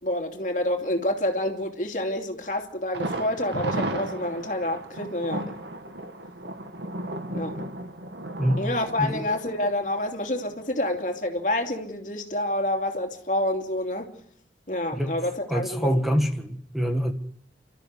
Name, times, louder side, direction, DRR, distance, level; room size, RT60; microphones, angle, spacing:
voice 1, 0.0-5.6 7.3-7.6 8.6-14.1 14.7-15.9, left 1 dB, 45° left, 2.8 m, -28 dB
Thunder, 2.9-10.7 11.0-11.1 11.5-11.6, right 1 dB, 80° right, 2.4 m, -34 dB
voice 2, 15.5-17.1, equal, ahead, 1.5 m, -25 dB
30.0 x 13.5 x 9.7 m
head